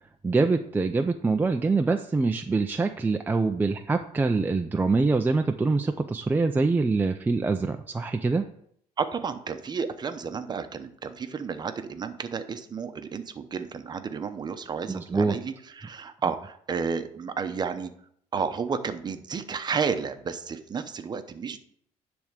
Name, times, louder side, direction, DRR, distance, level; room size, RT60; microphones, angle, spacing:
voice 1, 0.2-8.5 14.9-15.4, right 3 dB, 15° right, 5 dB, 0.4 m, -24 dB
voice 2, 9.0-17.9 18.3-21.6, right 5 dB, 30° right, 9 dB, 0.8 m, -32 dB
10.5 x 3.5 x 6.5 m, 0.67 s
cardioid pair, 120°, 13 cm